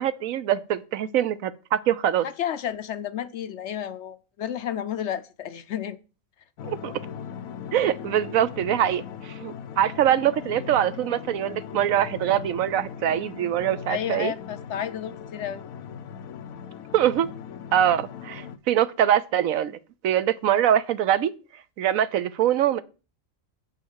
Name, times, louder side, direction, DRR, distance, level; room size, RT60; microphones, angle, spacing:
voice 1, 0.0-2.2 6.7-6.9 7.7-14.3 16.9-17.3 17.7-19.7 20.0-21.3 21.8-22.8, right 10 dB, 75° right, 1.1 m, -23 dB
voice 2, 2.2-6.0 13.9-15.6, left 9 dB, 65° left, 0.8 m, -31 dB
sound 1, 6.6-18.6, left 7 dB, 80° left, 1.2 m, -39 dB
8.1 x 5.5 x 6.4 m
omnidirectional pair, 1.5 m